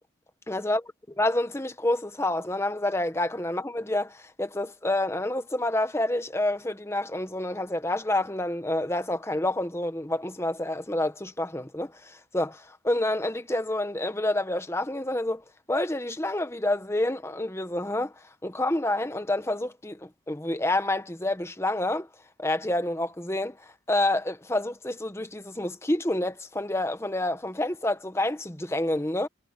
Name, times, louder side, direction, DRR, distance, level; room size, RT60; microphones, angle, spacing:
voice 1, 0.5-0.8 1.2-15.4 15.7-18.1 18.4-22.1 22.4-29.3, left 1 dB, 15° left, 1.0 m, -28 dB
head